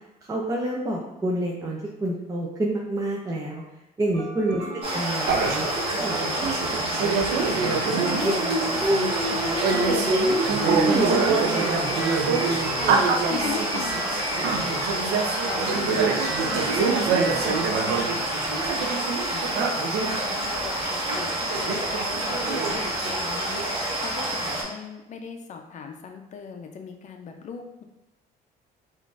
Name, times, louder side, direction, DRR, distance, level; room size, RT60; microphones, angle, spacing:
voice 1, 0.2-3.6 4.0-5.7 6.0-12.2, right 1 dB, 20° right, -2 dB, 0.5 m, -28 dB
sound 1, 4.1-20.1, right 1 dB, 55° right, 1.3 m, -38 dB
voice 2, 4.6-5.1 12.8-27.8, left 6 dB, 45° left, 4 dB, 0.5 m, -39 dB
sound 2, 4.8-24.6, right 1 dB, 35° right, 1.0 m, -28 dB
sound 3, 5.3-20.2 20.8-20.9 21.1-23.7, right 5 dB, 75° right, 0.5 m, -26 dB
3.6 x 2.5 x 2.4 m, 0.97 s
cardioid pair, 110°, 17 cm